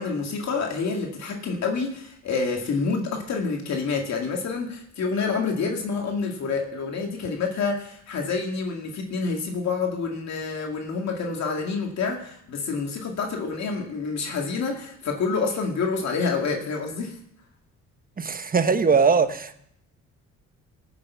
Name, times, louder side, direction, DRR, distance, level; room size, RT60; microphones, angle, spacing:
voice 1, 0.0-17.2, left 4 dB, 60° left, 2.2 m, -28 dB
voice 2, 18.2-19.6, right 5 dB, 30° right, 1.1 m, -21 dB
17.0 x 7.0 x 7.2 m
cardioid pair, 90°, 30 cm